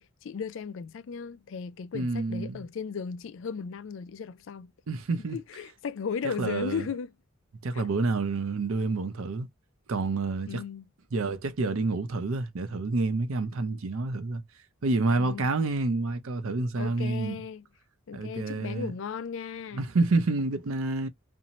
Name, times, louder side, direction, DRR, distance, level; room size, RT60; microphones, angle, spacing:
voice 1, 0.0-4.7 5.3-7.1 7.7-7.9 10.5-10.8 15.2-15.5 16.8-17.7 18.1-19.8, left 6 dB, 60° left, 0.3 m, -36 dB
voice 2, 1.9-2.6 4.9-5.4 6.2-6.9 7.6-9.5 9.9-10.6 11.1-14.4 14.8-17.4 18.1-18.9 19.7-21.1, right 3 dB, 70° right, 0.5 m, -28 dB
2.6 x 2.0 x 2.8 m
head